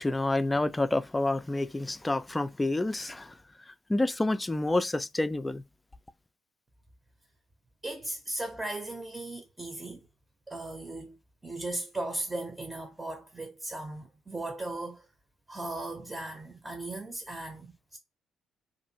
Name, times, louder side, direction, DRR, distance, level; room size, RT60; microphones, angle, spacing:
voice 1, 0.0-3.3 3.9-5.6, left 2 dB, 15° left, 0.3 m, -28 dB
voice 2, 7.8-10.1 10.5-11.2 11.4-15.1 15.5-18.0, right 2 dB, 20° right, 0.7 m, -37 dB
2.6 x 2.5 x 2.8 m
supercardioid pair, 60°, 0 cm